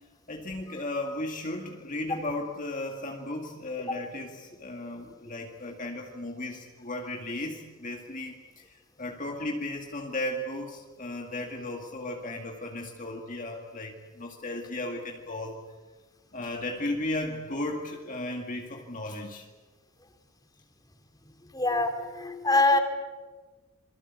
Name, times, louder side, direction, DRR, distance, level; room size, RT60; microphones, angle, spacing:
voice 1, 0.3-15.6 16.3-19.5, left 1 dB, 40° left, 2 dB, 2.2 m, -35 dB
voice 2, 21.5-22.8, left 2 dB, 20° left, 6 dB, 2.9 m, -24 dB
27.5 x 23.0 x 8.3 m, 1.3 s
head